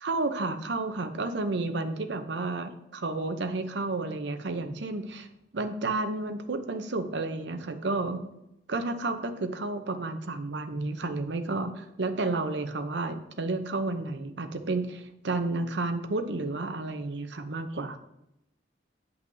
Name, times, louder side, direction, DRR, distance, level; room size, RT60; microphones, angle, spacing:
voice 1, 0.0-5.3 5.5-8.3 8.7-18.0, right 2 dB, 65° right, 8 dB, 0.7 m, -31 dB
9.3 x 5.7 x 2.7 m, 0.84 s
head